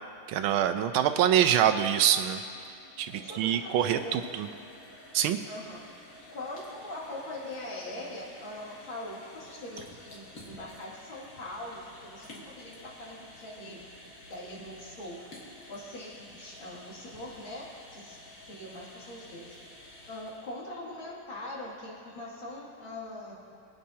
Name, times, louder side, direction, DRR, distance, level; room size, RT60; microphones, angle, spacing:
voice 1, 0.3-2.4 3.0-4.5 5.1-5.4, right 10 dB, 85° right, 8 dB, 1.5 m, -25 dB
sound 1, 2.4-20.6, left 1 dB, 45° left, 2.1 m, -51 dB
voice 2, 3.1-4.3 5.5-5.8 6.3-13.8 14.3-15.2 15.7-18.2 18.5-19.6 20.1-23.3, left 1 dB, 70° left, -6 dB, 3.2 m, -42 dB
25.0 x 8.8 x 2.8 m, 2.5 s
omnidirectional pair, 2.2 m